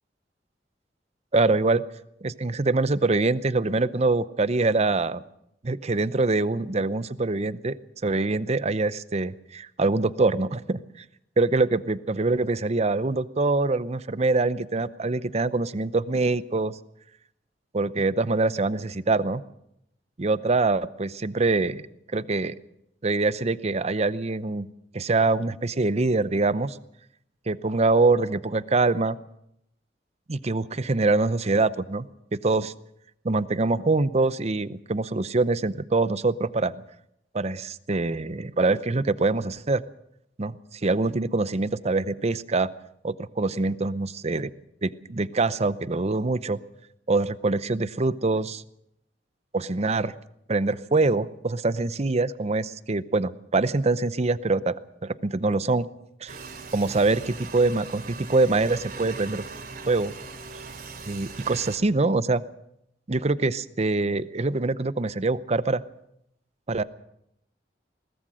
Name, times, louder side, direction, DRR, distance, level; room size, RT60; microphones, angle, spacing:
voice 1, 1.3-1.8 2.2-5.2 5.6-7.8 8.0-11.0 11.4-16.8 17.7-19.4 20.2-21.8 22.1-22.5 23.0-24.7 24.9-26.8 27.5-29.2 30.3-32.1 32.4-32.7 33.2-36.7 37.3-39.8 40.4-42.7 43.0-44.5 44.8-46.6 47.1-48.6 49.5-50.1 50.5-55.9 56.2-56.4 56.7-59.4 59.9-60.1 61.1-62.4 63.1-65.8 66.7-66.8, right 3 dB, 40° right, 15 dB, 0.7 m, -24 dB
sound 1, 56.3-61.8, right 4 dB, 60° right, 2.9 m, -40 dB
21.5 x 19.0 x 6.3 m, 0.77 s
head